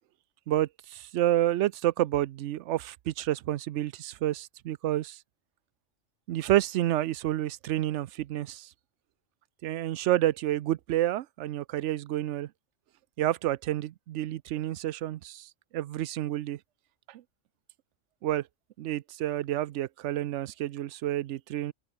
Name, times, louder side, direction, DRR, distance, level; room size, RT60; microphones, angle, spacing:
voice 1, 0.5-5.2 6.3-8.7 9.6-12.5 13.2-15.5 15.7-16.6 17.1-17.2 18.2-18.4 18.8-21.7, right 13 dB, 70° right, 0.9 m, -29 dB
open air
omnidirectional pair, 1.3 m